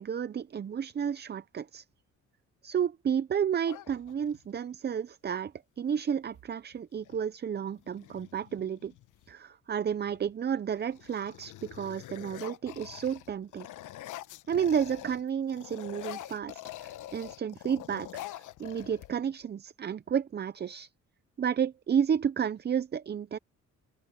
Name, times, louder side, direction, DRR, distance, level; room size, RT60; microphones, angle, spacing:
voice 1, 0.0-1.8 2.6-8.9 9.3-13.7 14.5-20.9 21.4-23.4, right 8 dB, 35° right, 0.6 m, -31 dB
sound 1, 3.6-4.6 6.3-6.4 6.7-7.2 7.8-9.3 9.9-10.3 10.7-15.2 15.5-19.4, left 14 dB, 80° left, 1.2 m, -45 dB
open air
cardioid pair, 90°, 30 cm